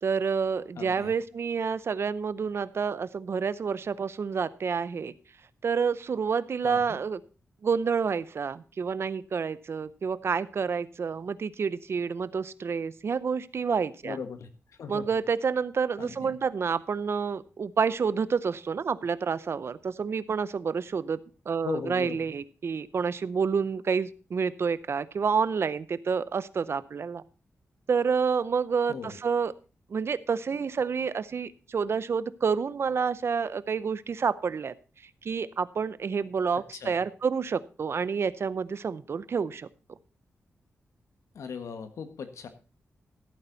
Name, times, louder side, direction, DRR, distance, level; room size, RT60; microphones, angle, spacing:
voice 1, 0.0-5.1 5.6-7.2 7.6-14.2 14.9-21.2 21.5-27.2 27.9-29.5 29.9-34.7 35.2-39.7, right 6 dB, 60° right, 17 dB, 0.7 m, -29 dB
voice 2, 0.8-1.1 6.6-7.0 14.0-14.5 14.8-15.0 16.0-16.4 21.6-22.2 28.9-29.2 36.5-37.0 41.3-42.5, left 6 dB, 90° left, 9 dB, 1.6 m, -38 dB
14.5 x 8.7 x 4.0 m, 0.35 s
wide cardioid pair, 95°, 5 cm